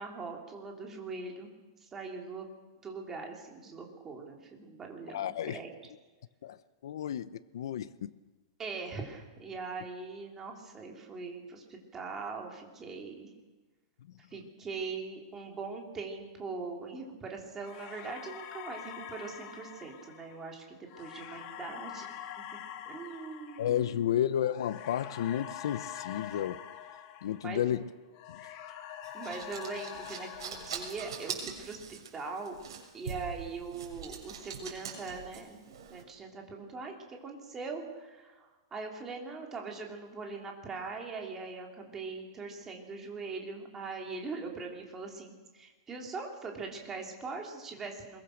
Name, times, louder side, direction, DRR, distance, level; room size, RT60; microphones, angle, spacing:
voice 1, 0.0-1.5 1.8-2.5 2.8-5.7 8.6-13.3 14.3-22.1 22.9-24.1 27.4-27.7 29.1-31.8 32.1-32.6 32.9-48.2, right 4 dB, 15° right, 3.2 m, -41 dB
voice 2, 5.1-5.6 6.4-6.6 6.8-8.1 23.6-26.6 27.2-27.8 28.3-28.4, left 10 dB, 65° left, 0.9 m, -32 dB
sound 1, 17.6-27.8 28.1-31.5, left 10 dB, 35° left, 1.9 m, -45 dB
sound 2, 29.0-36.0, right 7 dB, 75° right, 6.9 m, -43 dB
24.5 x 22.0 x 6.6 m
supercardioid pair, 175°, 3 cm